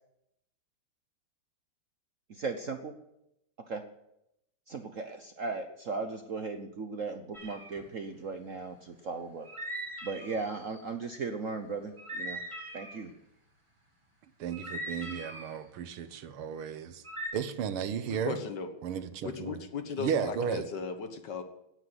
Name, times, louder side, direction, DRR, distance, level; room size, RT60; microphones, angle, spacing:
voice 1, 2.3-2.9 3.7-3.8 4.7-9.5 10.0-12.4 12.7-13.1, right 4 dB, 50° right, 1.0 m, -37 dB
sound 1, 7.3-7.8 9.4-10.8 12.0-13.0 14.5-15.6 17.0-17.3, equal, 15° right, 3.0 m, -40 dB
voice 2, 14.4-17.0 17.3-18.4 18.8-19.6 20.0-20.7, right 8 dB, 80° right, 1.9 m, -34 dB
voice 3, 18.1-18.7 19.2-21.4, left 5 dB, 55° left, 1.8 m, -37 dB
17.0 x 9.8 x 7.9 m
omnidirectional pair, 2.4 m